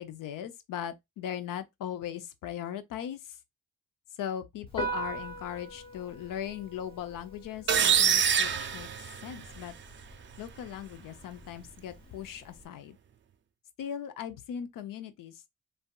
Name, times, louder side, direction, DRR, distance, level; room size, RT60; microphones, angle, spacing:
voice 1, 0.0-3.4 4.2-8.9 9.2-9.7 10.4-13.0 13.8-15.4, left 9 dB, 75° left, 0.7 m, -39 dB
Piano, 4.7-12.7, right 2 dB, 15° left, 1.2 m, -42 dB
sound 1, 7.7-9.6, right 8 dB, 35° right, 0.4 m, -25 dB
3.3 x 2.7 x 2.3 m
cardioid pair, 100°, 33 cm